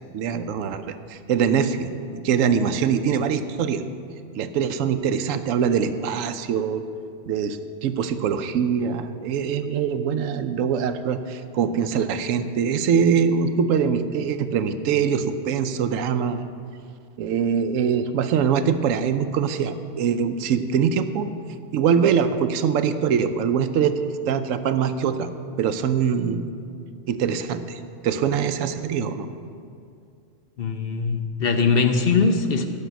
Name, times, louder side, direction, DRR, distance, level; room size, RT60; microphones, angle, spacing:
voice 1, 0.1-1.9 2.2-3.8 4.4-6.8 7.3-16.5 17.2-21.3 21.7-24.0 24.3-25.3 25.6-26.4 27.1-29.3, right 7 dB, 80° right, 10 dB, 1.0 m, -23 dB
voice 2, 30.6-32.7, left 4 dB, 55° left, 6 dB, 0.8 m, -21 dB
12.0 x 5.5 x 8.0 m, 2.4 s
omnidirectional pair, 1.3 m